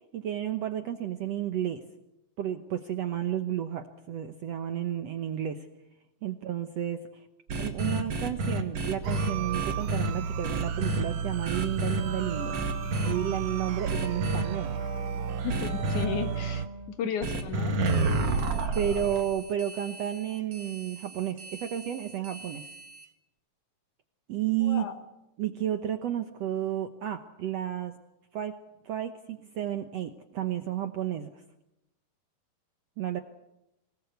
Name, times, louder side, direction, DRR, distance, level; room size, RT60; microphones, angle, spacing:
voice 1, 0.1-1.8 2.4-5.7 6.2-7.2 7.6-12.6 13.0-14.8 18.7-22.7 24.3-24.9 25.4-28.0 28.3-28.5 28.8-31.3 33.0-33.2, right 10 dB, 65° right, 7 dB, 1.7 m, -32 dB
sound 1, 7.5-10.1 10.4-11.0 11.4-12.0 12.5-13.1 13.8-14.4 15.5-16.0 17.2-23.0, right 2 dB, 50° right, 2.6 m, -31 dB
sound 2, 9.0-16.7, right 7 dB, 85° right, 1.2 m, -33 dB
Wind instrument woodwind instrument, 11.9-17.0, right 2 dB, 25° left, 6.5 m, -41 dB
voice 2, 15.4-16.6 17.0-18.1 24.6-25.0, left 8 dB, 65° left, 7 dB, 2.9 m, -34 dB
25.5 x 19.0 x 8.1 m, 0.91 s
omnidirectional pair, 4.1 m